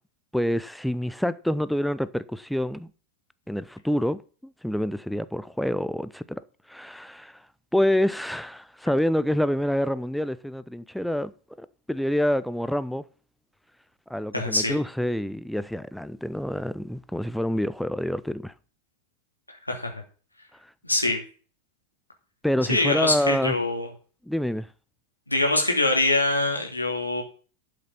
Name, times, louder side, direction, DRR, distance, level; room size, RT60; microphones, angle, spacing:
voice 1, 0.3-2.9 3.5-6.4 6.7-7.5 7.7-11.3 11.6-13.0 14.1-18.5 22.4-23.6 24.3-24.7, left 1 dB, ahead, 0.5 m, -27 dB
voice 2, 14.3-14.7 19.5-20.0 20.8-21.2 22.7-23.9 25.3-27.2, left 2 dB, 85° left, 2.7 m, -24 dB
11.5 x 6.7 x 5.9 m
figure-of-eight pair, 90°, 0 cm